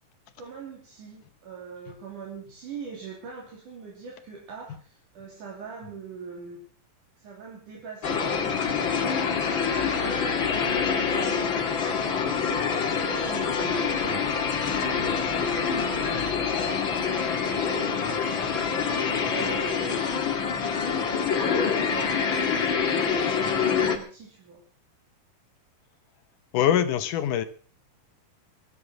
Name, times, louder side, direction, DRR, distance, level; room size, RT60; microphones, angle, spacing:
voice 1, 0.4-6.6 7.2-8.6 9.5-14.3 14.7-16.7 17.5-18.2 18.5-20.3 20.6-24.6, right 5 dB, 65° right, -1 dB, 4.5 m, -42 dB
sound 1, 8.0-24.0, left 6 dB, 40° left, 2.2 m, -26 dB
voice 2, 26.5-27.4, left 10 dB, 70° left, 12 dB, 2.5 m, -23 dB
23.0 x 8.6 x 6.1 m, 0.41 s
omnidirectional pair, 3.9 m